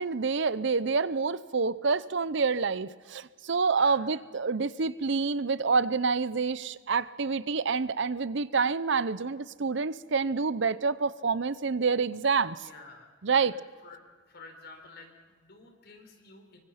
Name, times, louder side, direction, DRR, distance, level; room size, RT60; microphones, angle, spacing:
voice 1, 0.0-12.6 13.2-13.5, right 4 dB, 65° right, 17 dB, 0.7 m, -27 dB
voice 2, 3.7-4.0 12.6-13.5 13.8-14.0 14.3-16.6, left 3 dB, 55° left, 4 dB, 4.5 m, -51 dB
25.0 x 24.0 x 5.8 m, 1.5 s
head